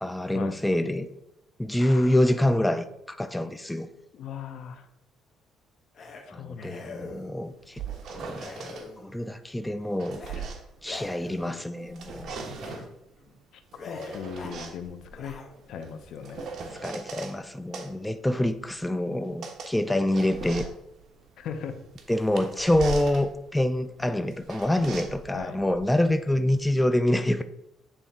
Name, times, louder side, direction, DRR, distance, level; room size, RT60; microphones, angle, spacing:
voice 1, 0.0-1.1 1.6-3.9 6.3-7.8 8.1-10.2 10.8-12.4 16.7-20.7 22.1-27.4, left 1 dB, 5° left, 9 dB, 0.4 m, -26 dB
voice 2, 1.8-2.2 2.6-2.7 4.1-4.9 6.3-7.2 13.5-15.4 15.7-16.5 21.4-21.8 25.3-25.6, left 7 dB, 65° left, 9 dB, 0.8 m, -39 dB
sound 1, 5.9-6.2 6.6-7.5 8.3-9.3 10.1-10.4 10.8-11.7 12.5-12.8 13.2-13.4 13.7-14.6 15.1-15.8, left 4 dB, 40° left, 1.2 m, -43 dB
sound 2, 7.5-8.9 9.7-11.5 11.8-13.0 13.7-17.4 17.7-26.8, right 4 dB, 55° right, 1.1 m, -40 dB
9.0 x 3.4 x 4.3 m, 0.82 s
cardioid pair, 130°, 0 cm